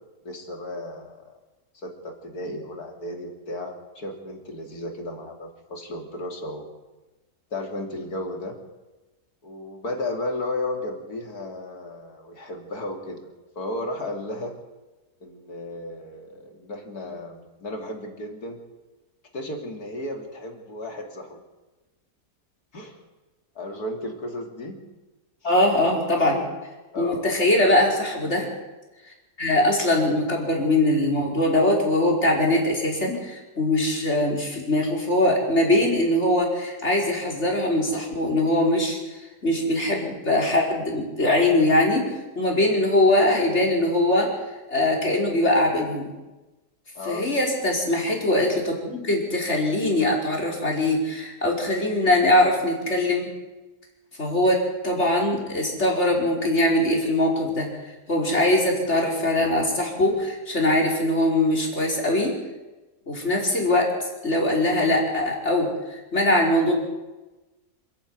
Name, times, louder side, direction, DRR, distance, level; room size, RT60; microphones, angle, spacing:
voice 1, 0.2-1.3 1.8-6.7 7.5-8.6 9.4-14.6 15.2-18.6 19.3-21.4 22.7-23.0 23.6-24.8 26.9-27.3 47.0-47.3, left 1 dB, 75° left, 3 dB, 3.5 m, -34 dB
voice 2, 25.4-26.4 27.0-28.5 29.4-42.1 42.3-44.3 44.7-46.1 47.0-53.3 54.2-57.7 58.1-62.3 63.1-66.7, left 1 dB, 45° left, -1 dB, 5.1 m, -22 dB
27.0 x 11.5 x 9.5 m, 1.1 s
omnidirectional pair, 1.7 m